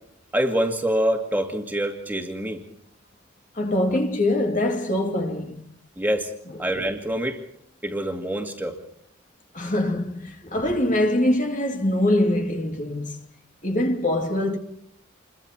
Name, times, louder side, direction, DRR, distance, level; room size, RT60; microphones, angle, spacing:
voice 1, 0.3-2.6 6.0-6.3 6.6-7.4 7.8-8.8, right 1 dB, 10° right, 2.4 m, -25 dB
voice 2, 3.5-5.7 9.5-13.2 13.6-14.6, left 1 dB, 40° left, 2.6 m, -23 dB
28.0 x 23.0 x 4.5 m
head